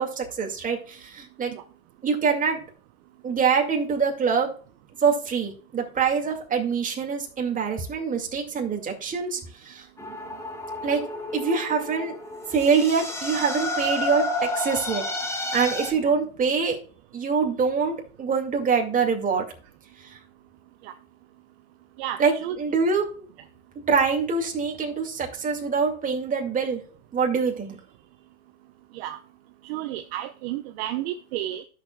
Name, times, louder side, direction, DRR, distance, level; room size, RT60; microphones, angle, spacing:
voice 1, 0.0-1.5 2.0-2.6 3.2-4.5 5.0-9.9 10.8-11.0 11.3-12.1 12.5-15.0 15.5-16.8 17.1-19.4 20.0-20.2 22.2-22.3 22.6-23.3 23.9-26.8 27.1-27.8, right 5 dB, 20° right, 1 dB, 2.2 m, -24 dB
sound 1, 10.0-15.9, left 2 dB, 5° left, 1.2 m, -31 dB
voice 2, 22.0-22.6 28.9-29.2 29.6-31.6, right 13 dB, 45° right, 7 dB, 0.8 m, -32 dB
13.0 x 6.7 x 2.3 m, 0.41 s
hypercardioid pair, 125°, 42 cm